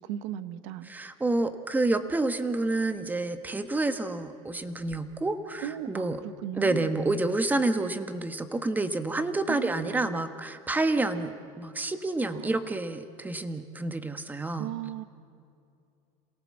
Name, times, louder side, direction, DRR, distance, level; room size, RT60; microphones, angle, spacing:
voice 1, 0.0-0.9 5.6-6.9 9.5-10.2 12.3-12.7 14.6-15.0, right 12 dB, 85° right, 14 dB, 1.0 m, -37 dB
voice 2, 0.8-6.2 6.5-14.7, right 2 dB, 10° right, 10 dB, 1.2 m, -29 dB
27.5 x 17.5 x 7.5 m, 2.5 s
supercardioid pair, 130°, 15 cm